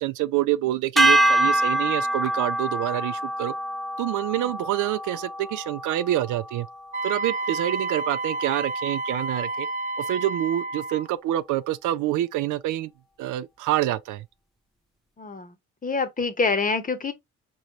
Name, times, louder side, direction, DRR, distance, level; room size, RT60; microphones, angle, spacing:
voice 1, 0.0-3.5 4.0-6.7 7.0-9.7 10.0-12.9 13.2-14.3, right 14 dB, 80° right, 0.5 m, -27 dB
sound 1, 1.0-7.3, right 1 dB, ahead, 0.5 m, -25 dB
Wind instrument woodwind instrument, 6.9-11.1, right 3 dB, 25° right, 0.9 m, -30 dB
voice 2, 15.2-15.5 15.8-17.1, left 4 dB, 25° left, 1.0 m, -25 dB
4.0 x 3.1 x 2.9 m
cardioid pair, 90°, 30 cm